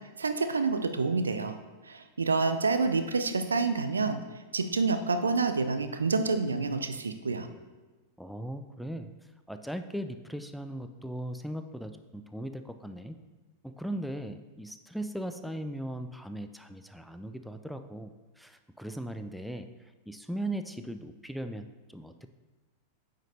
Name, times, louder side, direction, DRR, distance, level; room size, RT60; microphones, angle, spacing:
voice 1, 0.2-1.6 1.8-4.2 4.5-7.5, right 4 dB, 75° right, 8 dB, 0.4 m, -28 dB
voice 2, 8.2-9.1 9.5-13.2 13.6-19.7 20.1-22.3, right 1 dB, ahead, 8 dB, 0.3 m, -38 dB
8.9 x 5.1 x 2.7 m, 1.2 s
figure-of-eight pair, 90°, 0 cm